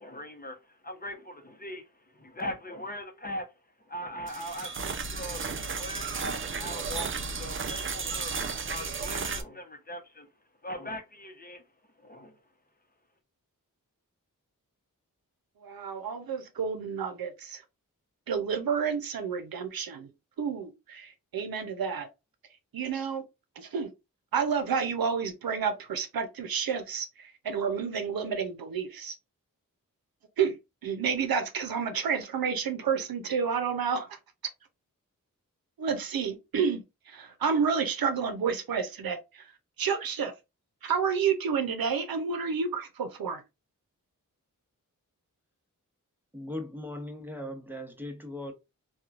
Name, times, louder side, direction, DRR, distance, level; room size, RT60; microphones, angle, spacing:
voice 1, 0.0-3.5 3.8-7.1 7.4-8.3 8.7-10.3 10.6-11.7 12.0-12.4, left 1 dB, 25° left, 0.7 m, -40 dB
sound 1, 4.3-9.4, right 5 dB, 35° right, 0.5 m, -34 dB
voice 2, 15.6-17.6 18.3-20.1 20.4-22.1 22.7-23.2 23.6-23.9 24.3-29.2 30.4-30.6 30.8-34.2 35.8-39.5 39.8-40.3 40.8-43.4, right 6 dB, 85° right, 0.6 m, -30 dB
voice 3, 46.3-48.5, left 1 dB, 5° right, 0.9 m, -38 dB
2.9 x 2.3 x 2.4 m
cardioid pair, 45°, 35 cm